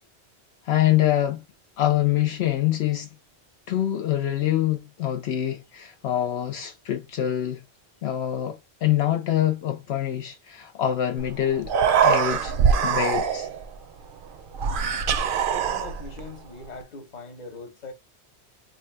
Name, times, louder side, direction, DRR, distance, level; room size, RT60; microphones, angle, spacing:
voice 1, 0.6-1.4 1.8-3.1 3.7-7.6 8.0-11.7 12.0-12.6 12.8-13.5, left 12 dB, 75° left, 0.9 m, -25 dB
Human voice, 11.2-11.3 11.6-13.6 14.5-16.2, right 7 dB, 60° right, 0.6 m, -22 dB
voice 2, 15.5-17.9, left 3 dB, 40° left, 1.0 m, -41 dB
3.1 x 2.4 x 4.3 m
omnidirectional pair, 1.1 m